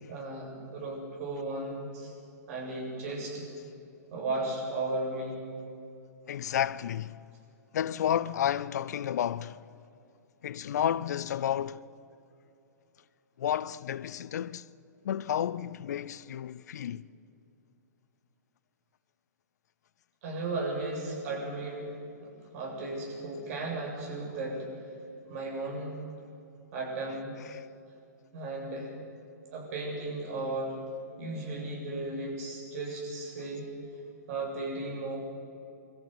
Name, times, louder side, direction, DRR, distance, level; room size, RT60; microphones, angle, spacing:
voice 1, 0.1-2.1 2.5-3.5 4.1-5.4 20.2-21.9 22.2-24.7 25.3-26.0 26.7-27.3 28.3-28.9 29.5-30.8 31.2-33.6 34.3-35.2, right 2 dB, 55° right, 7.8 m, -35 dB
voice 2, 6.3-7.2 7.7-9.6 10.4-11.8 13.4-14.7 15.0-17.0 27.4-27.7, left 10 dB, 65° left, 0.6 m, -31 dB
23.0 x 14.0 x 9.6 m
hypercardioid pair, 125°, 10 cm